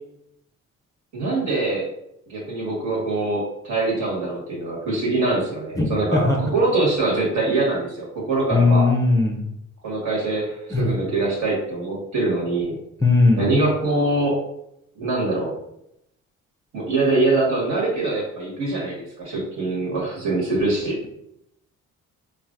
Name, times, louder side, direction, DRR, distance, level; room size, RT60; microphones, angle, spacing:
voice 1, 1.1-1.9 2.3-8.9 9.8-12.7 13.4-14.4 14.9-15.5 16.7-21.0, right 2 dB, 60° right, -3 dB, 1.4 m, -23 dB
voice 2, 5.8-6.4 8.5-9.4 10.7-10.9 13.0-13.4, left 3 dB, 10° left, 0 dB, 0.5 m, -18 dB
3.2 x 2.5 x 2.4 m, 0.80 s
supercardioid pair, 70°, 33 cm